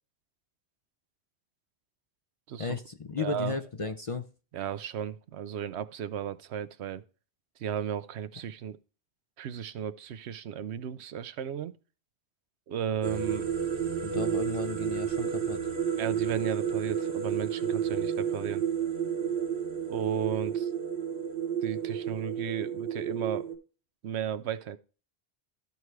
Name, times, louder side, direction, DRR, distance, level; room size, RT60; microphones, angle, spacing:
voice 1, 2.6-4.3 14.0-15.6, left 4 dB, 40° left, 0.5 m, -34 dB
voice 2, 3.2-3.6 4.5-7.0 7.6-8.8 9.4-11.7 12.7-13.5 16.0-18.6 19.9-20.7 21.6-23.5 24.0-24.8, right 8 dB, 85° right, 0.9 m, -34 dB
sound 1, 13.0-23.5, right 8 dB, 65° right, 1.4 m, -31 dB
13.5 x 4.7 x 3.2 m
omnidirectional pair, 1.1 m